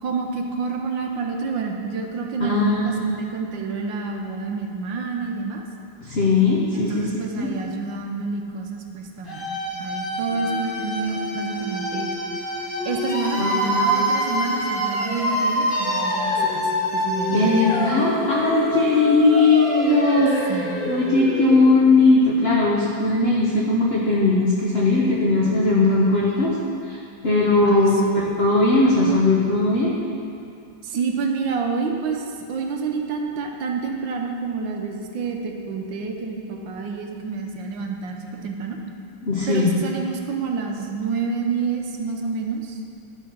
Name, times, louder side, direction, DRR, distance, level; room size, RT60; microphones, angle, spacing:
voice 1, 0.0-5.6 6.7-9.5 9.8-12.1 12.8-17.6 20.5-20.9 27.6-28.0 30.8-38.8 39.5-42.8, right 4 dB, 70° right, 2 dB, 1.5 m, -28 dB
voice 2, 2.4-3.1 6.0-7.1 7.4-7.5 13.4-13.9 17.3-20.5 20.9-26.5 26.9-27.0 27.2-28.0 28.4-29.9 39.2-39.7, left 3 dB, 45° left, -5 dB, 0.9 m, -19 dB
sound 1, 9.3-22.1, equal, 25° left, 2.8 m, -26 dB
12.0 x 4.8 x 6.0 m, 2.4 s
omnidirectional pair, 2.2 m